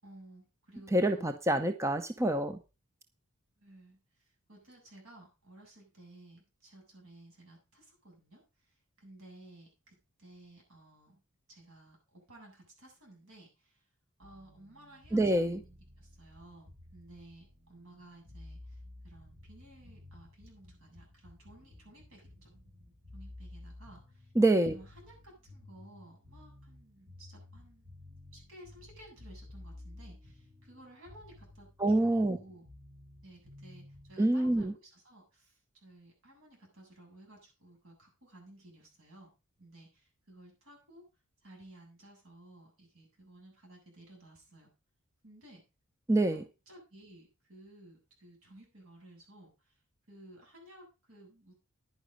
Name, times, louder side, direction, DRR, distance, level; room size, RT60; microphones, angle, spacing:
voice 1, 0.0-1.4 3.6-11.2 11.5-13.8 14.2-22.5 23.1-24.3 24.7-27.9 28.3-32.6 33.2-39.3 39.6-41.0 41.4-44.7 45.2-45.6 46.3-49.8 50.1-51.5, right 1 dB, 65° right, 0 dB, 7.9 m, -56 dB
voice 2, 0.9-2.6 15.1-15.6 24.4-24.7 31.8-32.4 34.2-34.7 46.1-46.4, right 1 dB, 15° right, 8 dB, 0.7 m, -26 dB
sound 1, 14.2-34.1, left 1 dB, 45° right, 3.5 m, -53 dB
10.5 x 10.5 x 5.1 m, 0.30 s
head